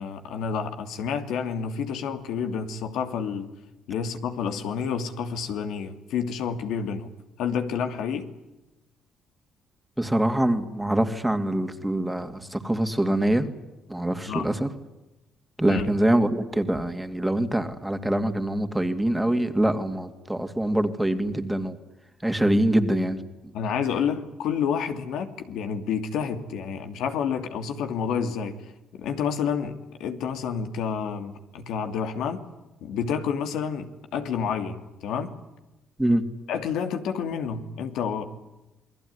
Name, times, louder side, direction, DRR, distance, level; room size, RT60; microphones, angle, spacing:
voice 1, 0.0-3.5 3.9-7.1 7.4-8.3 14.3-14.5 15.6-15.9 23.5-28.6 28.9-32.4 32.8-35.3 36.5-38.2, left 7 dB, 80° left, 7 dB, 2.8 m, -29 dB
voice 2, 10.0-13.5 13.9-14.7 15.6-21.8 22.2-23.2 36.0-36.2, right 1 dB, 5° right, 7 dB, 2.5 m, -24 dB
28.5 x 20.5 x 9.8 m, 1.0 s
cardioid pair, 105°, 0 cm